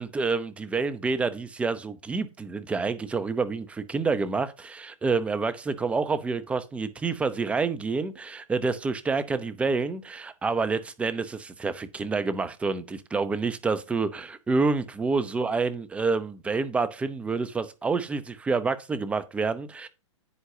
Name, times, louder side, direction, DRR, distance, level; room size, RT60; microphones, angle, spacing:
voice 1, 0.0-19.9, right 4 dB, 10° right, 0.8 m, -28 dB
9.7 x 8.2 x 2.8 m
hypercardioid pair, 145°, 16 cm